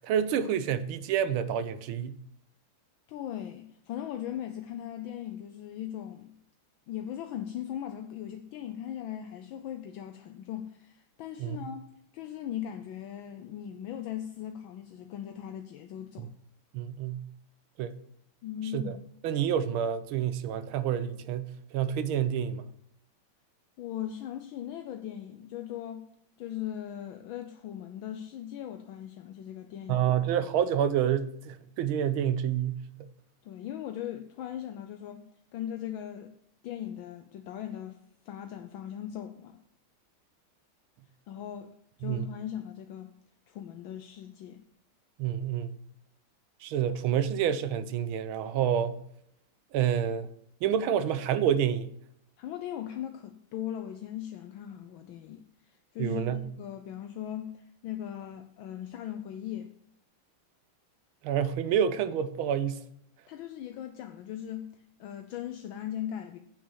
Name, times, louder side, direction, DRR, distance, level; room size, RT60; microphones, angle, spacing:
voice 1, 0.0-2.2 11.4-11.6 16.7-17.2 17.8-17.9 18.7-18.8 19.2-22.7 29.9-33.1 42.0-42.2 45.2-45.7 46.6-49.0 49.7-50.3 50.6-51.9 56.0-56.4 61.2-62.8, right 9 dB, 80° right, 1.6 m, -28 dB
voice 2, 3.1-6.4 6.9-16.3 18.4-18.9 23.8-26.1 26.4-30.1 33.4-35.2 35.5-36.3 36.6-39.6 41.3-43.1 43.5-44.6 52.4-59.7 63.3-66.4, left 10 dB, 75° left, 1.4 m, -39 dB
8.2 x 6.2 x 6.3 m
omnidirectional pair, 2.3 m